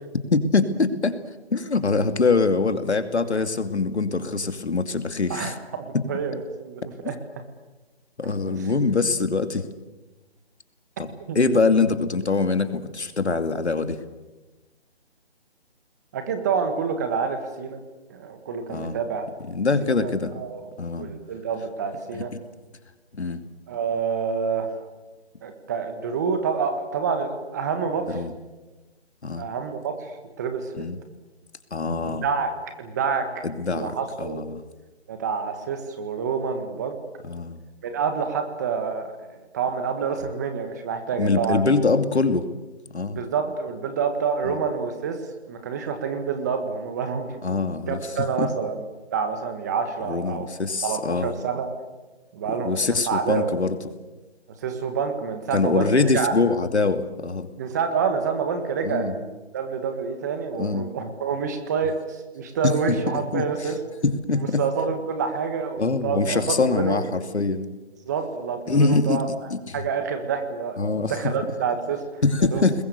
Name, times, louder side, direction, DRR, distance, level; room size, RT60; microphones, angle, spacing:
voice 1, 0.3-1.2 1.5-5.5 8.2-9.7 11.0-14.0 18.7-19.0 19.4-20.3 20.8-21.1 22.1-22.2 23.1-23.4 28.1-28.3 29.2-29.5 30.8-31.0 31.7-32.3 33.4-34.6 37.2-37.6 41.2-42.4 42.9-43.2 47.4-48.0 48.4-48.5 50.1-51.4 52.5-53.8 55.5-57.5 58.8-59.1 60.6-60.9 62.6-63.0 63.3-63.7 64.0-64.6 65.8-67.7 68.7-69.2 69.5-69.8 70.8-71.1 72.2-72.7, left 3 dB, 90° left, 8 dB, 2.6 m, -23 dB
voice 2, 5.3-7.2 8.4-8.7 11.3-11.4 16.1-17.8 18.1-19.2 19.8-20.7 21.0-22.3 23.7-24.7 25.4-28.2 29.4-30.1 30.4-30.8 32.0-33.3 33.7-34.4 35.1-37.0 37.8-39.2 39.5-41.6 43.1-45.2 45.5-47.4 47.9-50.5 50.8-51.8 52.3-53.5 54.6-56.3 57.5-63.8 64.6-67.0 68.0-69.3 69.7-70.8 71.1-72.0 72.5-72.6, right 6 dB, 15° right, 7 dB, 1.5 m, -28 dB
29.0 x 21.0 x 6.8 m, 1.2 s
hypercardioid pair, 165°, 32 cm